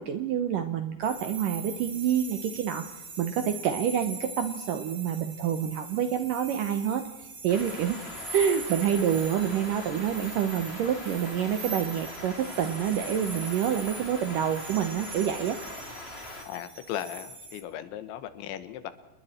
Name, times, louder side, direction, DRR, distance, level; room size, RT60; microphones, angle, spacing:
voice 1, 0.0-2.9 3.2-7.1 7.4-8.0 8.3-15.6, right 9 dB, 75° right, 8 dB, 2.0 m, -27 dB
sound 1, 1.0-17.6, right 2 dB, 35° right, 3.2 m, -42 dB
sound 2, 7.5-16.4, left 2 dB, 15° left, 2.7 m, -42 dB
voice 2, 16.4-18.9, left 10 dB, 85° left, 12 dB, 3.7 m, -37 dB
29.0 x 20.5 x 4.4 m, 1.1 s
omnidirectional pair, 5.2 m